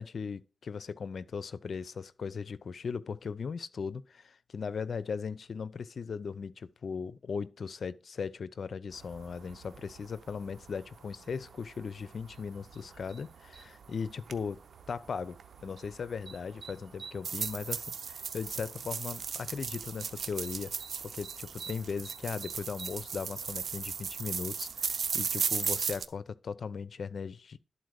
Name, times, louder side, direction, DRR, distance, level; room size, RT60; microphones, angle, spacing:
voice 1, 0.0-14.6 14.9-20.8 21.0-27.6, left 5 dB, 70° left, 0.6 m, -38 dB
sound 1, 8.9-26.1, right 6 dB, 80° right, 0.8 m, -38 dB
11.5 x 4.3 x 6.5 m
cardioid pair, 65°, 0 cm